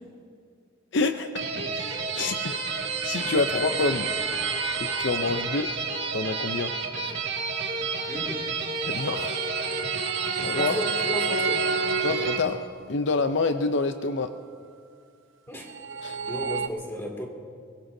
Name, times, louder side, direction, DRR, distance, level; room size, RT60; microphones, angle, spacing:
voice 1, 0.9-1.5 1.7-4.1 4.8-5.7 6.1-6.7 8.9-9.4 9.7-9.8 10.4-10.8 12.0-12.6 12.9-14.3 16.0-16.2, left 3 dB, 65° left, 8 dB, 0.6 m, -27 dB
sound 1, 1.4-12.4, right 5 dB, 60° right, 2.0 m, -31 dB
sound 2, 1.7-5.7 8.5-12.9 15.5-16.7, right 5 dB, 80° right, 0.8 m, -31 dB
voice 2, 8.1-8.4 10.6-11.7 15.5-15.7 16.3-17.3, equal, 15° left, 1 dB, 2.5 m, -33 dB
23.5 x 22.0 x 2.7 m, 2.1 s
head